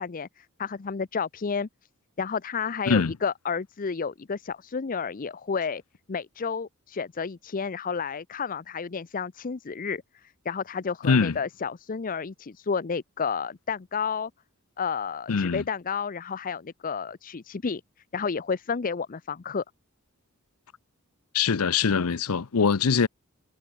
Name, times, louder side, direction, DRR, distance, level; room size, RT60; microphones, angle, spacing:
voice 1, 0.0-1.7 2.2-5.8 6.1-14.3 14.8-17.8 18.1-19.6, left 5 dB, 40° left, 0.5 m, -31 dB
voice 2, 11.0-11.4 15.3-15.6 21.3-23.1, left 5 dB, 85° left, 0.7 m, -23 dB
head